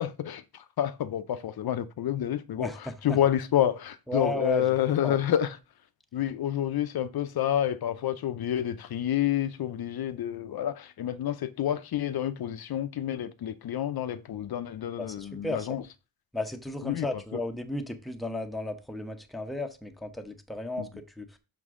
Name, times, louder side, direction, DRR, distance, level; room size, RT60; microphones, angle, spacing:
voice 1, 0.0-5.6 6.1-15.8 16.8-17.4 20.8-20.9, left 11 dB, 75° left, 0.7 m, -29 dB
voice 2, 2.6-3.2 4.1-4.7 5.0-5.2 15.0-15.7 16.3-20.9 21.2-21.4, left 1 dB, ahead, 0.8 m, -34 dB
6.3 x 6.0 x 3.7 m
wide cardioid pair, 135°, 37 cm